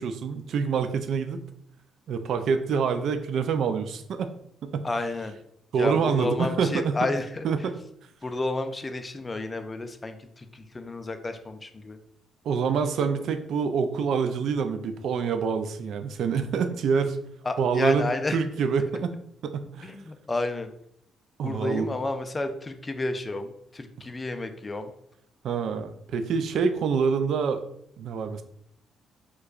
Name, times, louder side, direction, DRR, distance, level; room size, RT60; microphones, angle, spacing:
voice 1, 0.0-1.4 2.1-4.3 4.6-4.9 5.7-7.0 7.4-7.8 12.4-17.2 17.6-19.1 19.4-19.9 21.4-21.9 25.4-27.6 28.0-28.4, right 6 dB, 70° right, 9 dB, 0.3 m, -26 dB
voice 2, 4.8-5.4 5.8-7.5 8.2-12.0 17.5-18.4 19.8-20.7 21.4-24.9, left 2 dB, 25° left, 7 dB, 0.3 m, -31 dB
4.6 x 2.2 x 2.4 m, 0.73 s
cardioid pair, 110°, 0 cm